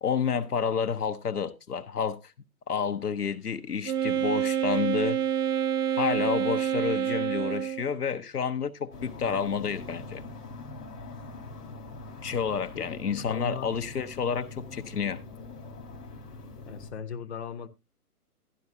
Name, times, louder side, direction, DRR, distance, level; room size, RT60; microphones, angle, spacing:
voice 1, 0.0-2.3 2.7-5.2 6.0-10.2 12.2-15.2, left 6 dB, 75° left, 0.9 m, -30 dB
sound 1, 2.8-10.4, right 4 dB, 60° right, 6.0 m, -62 dB
Wind instrument woodwind instrument, 3.8-7.9, right 9 dB, 80° right, 0.6 m, -27 dB
sound 2, 8.9-16.9, left 2 dB, 10° left, 0.7 m, -43 dB
voice 2, 12.7-13.7 16.7-17.7, left 6 dB, 45° left, 0.9 m, -38 dB
12.0 x 11.0 x 2.7 m
figure-of-eight pair, 130°, 46 cm